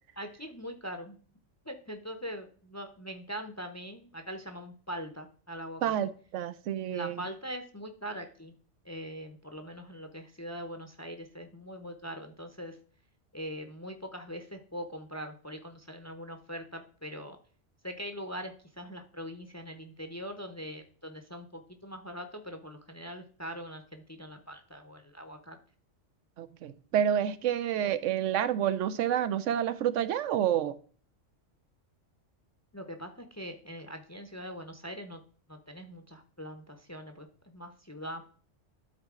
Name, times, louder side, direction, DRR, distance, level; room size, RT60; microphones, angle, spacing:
voice 1, 0.2-1.2 1.7-5.9 6.9-8.5 8.8-12.8 13.3-17.4 17.8-25.6 32.7-35.2 35.5-38.2, equal, 20° left, 0.5 m, -42 dB
voice 2, 5.8-7.2 26.4-30.8, right 10 dB, 90° right, 1.0 m, -29 dB
12.0 x 4.1 x 3.6 m
omnidirectional pair, 1.2 m